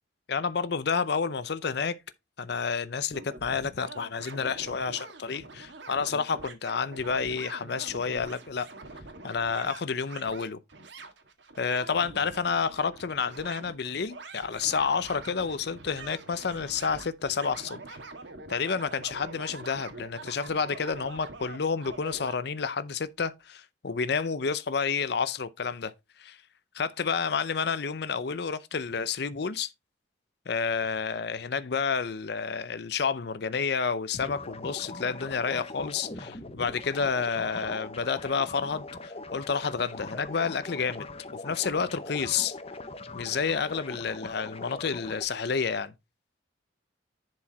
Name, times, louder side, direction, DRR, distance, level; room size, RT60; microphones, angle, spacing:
voice 1, 0.3-2.0 2.4-8.7 9.2-10.6 11.6-18.0 18.5-25.9 26.2-26.4 26.7-29.7 30.5-41.1 41.4-42.6 43.1-45.9, left 5 dB, 60° left, 0.6 m, -30 dB
sound 1, 3.1-22.4, right 3 dB, 70° right, 1.8 m, -45 dB
sound 2, 34.1-45.2, left 2 dB, 30° left, 0.8 m, -41 dB
10.5 x 4.8 x 4.1 m
head